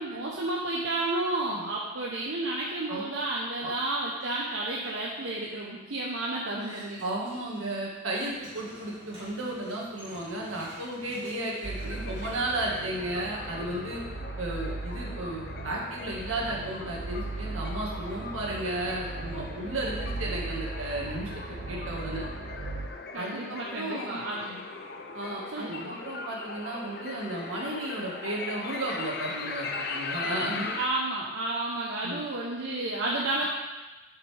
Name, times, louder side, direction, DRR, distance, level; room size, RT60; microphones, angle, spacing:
voice 1, 0.0-7.0 23.1-24.6 25.5-25.9 30.8-33.4, right 2 dB, 70° right, -4 dB, 1.0 m, -31 dB
sound 1, 6.6-7.7 8.0-13.4, equal, 25° right, 2.9 m, -49 dB
voice 2, 7.0-14.0 14.4-22.3 23.2-24.2 25.1-30.7 32.0-32.2, right 1 dB, 90° right, -3 dB, 1.9 m, -34 dB
sound 2, 11.6-22.9, right 3 dB, 55° right, 0.5 m, -38 dB
sound 3, 11.8-30.9, left 4 dB, 50° left, 0.6 m, -39 dB
9.8 x 5.7 x 3.5 m, 1.1 s
head